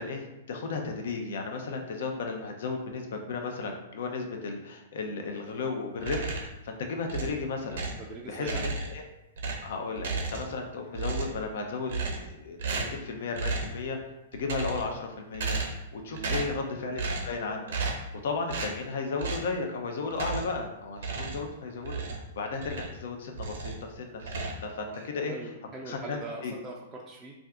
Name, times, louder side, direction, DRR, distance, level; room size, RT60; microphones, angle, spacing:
voice 1, 0.0-7.8 8.3-9.0 9.6-14.0 14.3-25.3 25.9-26.5, left 4 dB, 65° left, 3 dB, 0.5 m, -35 dB
sound 1, 6.0-6.6 7.1-8.1 8.4-9.0 9.4-10.6 10.9-11.5 11.9-12.3 12.6-13.0 13.3-13.8 14.3-15.0 15.3-15.9 16.1-16.6 17.0-17.4 17.7-18.1 18.5-18.8 19.2-19.5 20.1-20.6 21.0-23.0 23.3-23.8 24.2-25.0, right 3 dB, 70° right, 0.7 m, -34 dB
voice 2, 8.0-8.7 16.1-16.5 24.8-25.0 25.3-27.3, right 3 dB, 20° right, -2 dB, 0.4 m, -41 dB
2.5 x 2.3 x 3.5 m, 0.93 s
hypercardioid pair, 115°, 0 cm